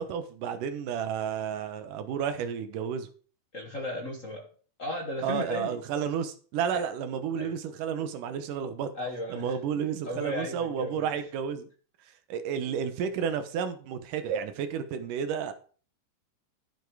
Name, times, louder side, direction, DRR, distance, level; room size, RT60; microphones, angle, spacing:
voice 1, 0.0-3.1 5.2-8.9 9.3-11.7 12.3-15.5, right 7 dB, 70° right, 9 dB, 2.6 m, -31 dB
voice 2, 3.5-4.5 4.8-5.7 6.7-6.8 7.4-7.5 8.9-11.1, left 1 dB, 60° left, 1 dB, 0.8 m, -35 dB
12.0 x 7.2 x 4.7 m, 0.41 s
omnidirectional pair, 4.0 m